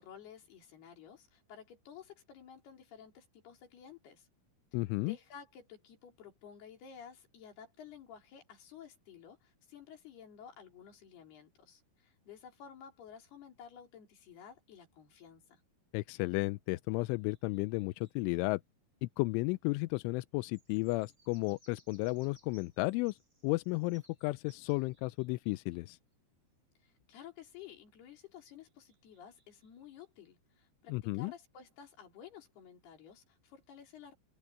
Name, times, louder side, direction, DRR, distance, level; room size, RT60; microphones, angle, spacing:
voice 1, 0.0-4.3 5.0-15.6 26.8-34.1, left 8 dB, 50° left, 5.5 m, -53 dB
voice 2, 4.7-5.2 15.9-18.6 19.0-23.2 23.4-26.0 30.9-31.3, left 23 dB, 85° left, 2.8 m, -33 dB
sound 1, 17.1-18.5 20.4-25.9 28.6-30.0, equal, 15° right, 4.7 m, -68 dB
open air
omnidirectional pair, 6.0 m